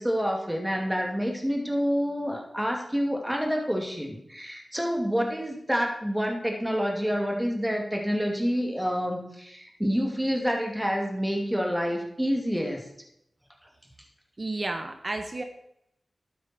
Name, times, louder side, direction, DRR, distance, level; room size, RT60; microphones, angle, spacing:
voice 1, 0.0-12.8, equal, 10° right, 1 dB, 2.7 m, -28 dB
voice 2, 14.4-15.4, right 2 dB, 40° right, 6 dB, 1.1 m, -32 dB
12.0 x 9.4 x 4.6 m, 0.77 s
cardioid pair, 55°, 0 cm